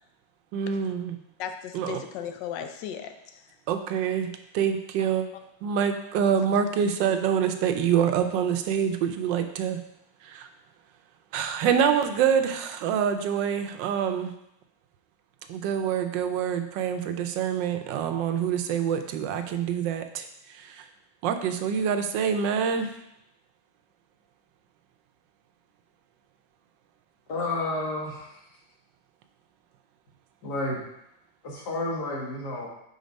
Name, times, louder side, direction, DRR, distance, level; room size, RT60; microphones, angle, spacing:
voice 1, 0.5-1.2 1.7-2.0 3.7-5.3 5.6-9.8 10.2-10.5 11.3-14.3 15.5-20.3 20.6-20.8 21.2-22.9, right 8 dB, 85° right, 7 dB, 1.3 m, -26 dB
voice 2, 1.4-3.4 6.6-6.7, left 8 dB, 80° left, 6 dB, 1.3 m, -36 dB
voice 3, 27.3-28.4 30.4-30.8 31.4-32.7, left 2 dB, 65° left, -2 dB, 1.9 m, -30 dB
5.2 x 4.2 x 5.1 m, 0.80 s
omnidirectional pair, 1.9 m